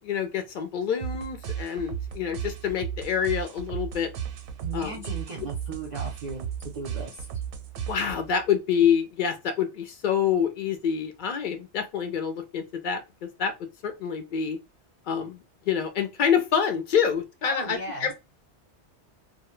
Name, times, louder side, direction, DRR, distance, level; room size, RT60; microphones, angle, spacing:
voice 1, 0.0-4.1 4.7-5.0 7.9-14.6 15.1-18.1, left 7 dB, 60° left, 0.5 m, -27 dB
sound 1, 1.0-8.4, right 8 dB, 80° right, 0.9 m, -35 dB
voice 2, 4.6-7.3 17.4-18.1, right 3 dB, 50° right, 0.6 m, -37 dB
2.1 x 2.1 x 3.0 m
omnidirectional pair, 1.2 m